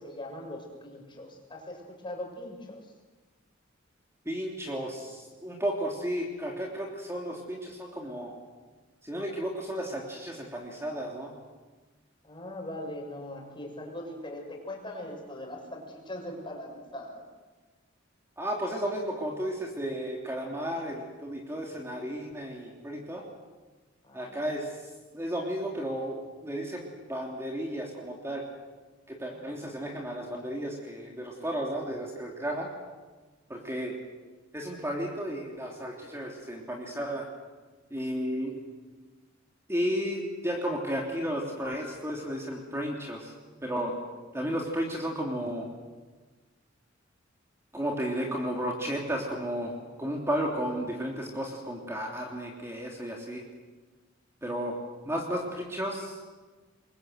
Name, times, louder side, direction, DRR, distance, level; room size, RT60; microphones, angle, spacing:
voice 1, 0.0-2.8 12.2-17.2 24.0-24.4 29.3-29.8, left 1 dB, 25° left, 1 dB, 6.2 m, -41 dB
voice 2, 4.2-8.3 9.0-11.3 18.4-23.2 24.1-24.7 25.1-28.4 29.1-32.7 33.5-33.9 34.5-37.3 37.9-38.6 39.7-43.3 43.6-43.9 44.3-45.7 47.7-53.4 54.4-54.7 55.0-56.2, equal, 15° right, -1 dB, 3.2 m, -33 dB
27.5 x 23.0 x 8.0 m, 1.3 s
head